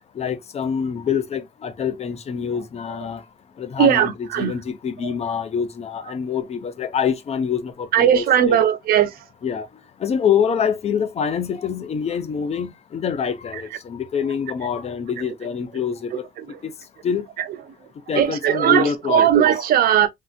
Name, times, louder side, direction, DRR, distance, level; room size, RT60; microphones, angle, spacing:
voice 1, 0.2-3.2 3.6-8.6 9.4-9.7 10.0-16.2 16.6-16.7 17.0-17.2 18.1-19.6, left 7 dB, 40° left, 0.7 m, -25 dB
voice 2, 3.8-4.5 7.9-9.1 18.2-20.1, right 9 dB, 65° right, 0.7 m, -18 dB
3.3 x 2.8 x 2.4 m
cardioid pair, 110°, 17 cm